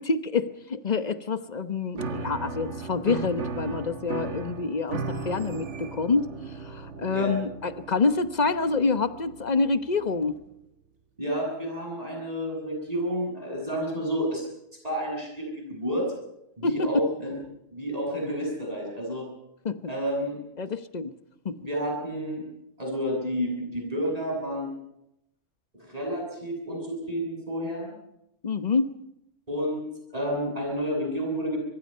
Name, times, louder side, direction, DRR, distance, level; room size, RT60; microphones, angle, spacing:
voice 1, 0.0-10.4 16.6-16.9 19.6-19.8 20.6-21.1 21.4-21.6 28.4-28.9, left 4 dB, 40° left, 11 dB, 1.1 m, -27 dB
Piano, 1.9-10.4, right 4 dB, 75° right, 1.7 m, -37 dB
voice 2, 11.2-14.5 14.8-16.1 16.6-17.3 17.7-19.3 19.9-20.4 21.6-22.4 22.8-24.7 25.8-27.9 29.5-29.8 30.1-31.6, equal, 30° right, 0 dB, 7.9 m, -30 dB
25.0 x 22.0 x 5.6 m, 0.82 s
omnidirectional pair, 1.2 m